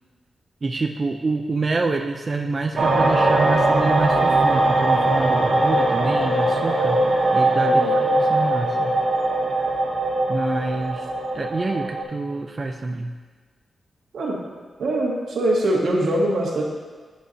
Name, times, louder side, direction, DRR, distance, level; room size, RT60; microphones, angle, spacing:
voice 1, 0.6-7.0 7.3-9.0 10.3-11.1 11.3-13.1, right 3 dB, 35° right, 2 dB, 0.3 m, -27 dB
sound 1, 2.8-12.0, right 2 dB, 70° right, 1.0 m, -20 dB
voice 2, 14.8-16.6, right 1 dB, 90° right, -3 dB, 1.2 m, -22 dB
10.0 x 4.0 x 2.6 m, 1.4 s
wide cardioid pair, 115°, 0 cm